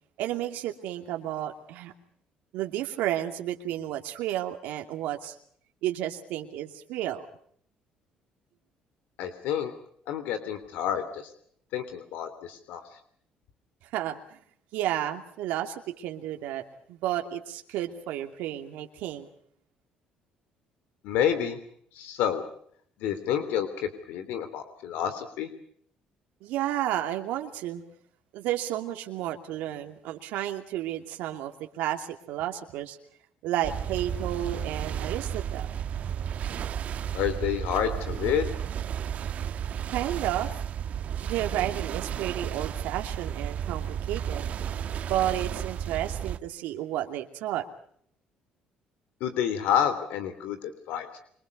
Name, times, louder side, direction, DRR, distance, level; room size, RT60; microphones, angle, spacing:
voice 1, 0.2-1.9 2.5-5.3 5.8-7.2 13.9-14.2 14.7-19.3 26.4-27.8 28.3-31.5 31.8-33.0 33.4-35.7 39.9-40.5 41.2-44.4 45.0-47.6, right 12 dB, 80° right, 4 dB, 2.8 m, -32 dB
voice 2, 9.2-9.7 10.1-11.3 11.7-12.8 21.0-21.6 22.0-22.4 23.0-25.5 37.1-38.5 49.2-51.2, left 9 dB, 80° left, 10 dB, 3.2 m, -29 dB
sound 1, 33.6-46.4, right 9 dB, 55° right, 1.6 m, -33 dB
27.5 x 24.0 x 5.4 m, 0.64 s
cardioid pair, 95°, 3 cm